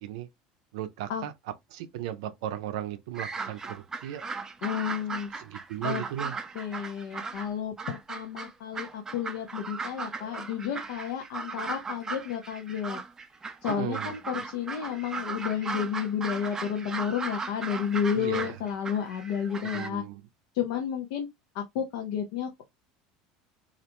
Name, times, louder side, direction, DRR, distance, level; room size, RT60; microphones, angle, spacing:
voice 1, 0.7-1.3 1.7-4.2 5.4-6.3 13.7-14.2 18.1-18.5 19.6-20.2, right 11 dB, 80° right, 0.4 m, -36 dB
sound 1, 3.1-7.5 7.8-19.9, right 4 dB, 20° right, 0.4 m, -37 dB
voice 2, 4.6-5.3 5.8-6.0 6.5-13.0 13.6-20.0 20.5-21.3 21.5-22.6, left 8 dB, 75° left, 0.6 m, -31 dB
2.4 x 2.1 x 2.9 m
supercardioid pair, 110°, 3 cm